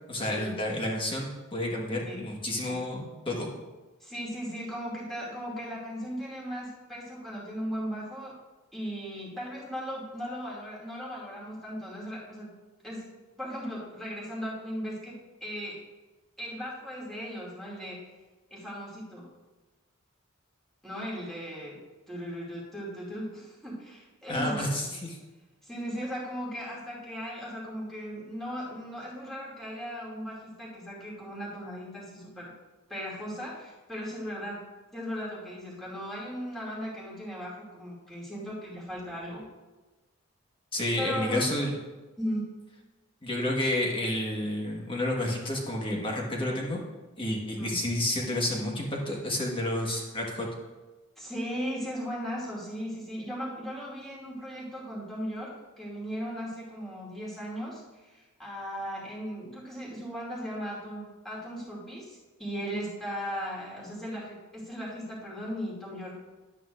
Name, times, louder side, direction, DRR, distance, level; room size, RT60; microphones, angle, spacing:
voice 1, 0.1-3.5 24.3-25.2 40.7-41.7 43.2-46.8 47.2-50.5, left 1 dB, 25° left, -1 dB, 1.4 m, -30 dB
voice 2, 4.0-8.4 8.7-12.5 12.8-13.1 13.4-15.8 16.4-18.0 18.5-19.3 20.8-21.8 22.1-24.6 25.6-32.5 32.9-34.6 34.9-39.4 41.0-41.6 42.2-42.5 47.6-47.8 51.2-66.1, equal, ahead, -7 dB, 2.4 m, -37 dB
11.5 x 9.0 x 2.5 m, 1.2 s
head